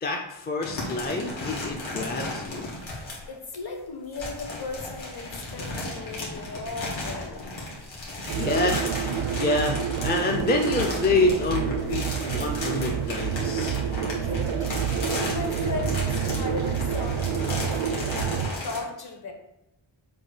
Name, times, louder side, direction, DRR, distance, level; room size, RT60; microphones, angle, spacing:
voice 1, 0.0-2.7 8.3-9.1 9.4-13.8, left 3 dB, 20° left, 1 dB, 0.4 m, -27 dB
sound 1, 0.6-3.3 4.0-18.8, left 2 dB, 70° left, 2.0 m, -35 dB
voice 2, 3.3-7.6 14.1-19.3, left 3 dB, 50° left, 2 dB, 1.2 m, -37 dB
sound 2, 8.3-18.5, right 8 dB, 90° right, 0.6 m, -28 dB
7.4 x 2.6 x 4.9 m, 0.85 s
wide cardioid pair, 165°, 48 cm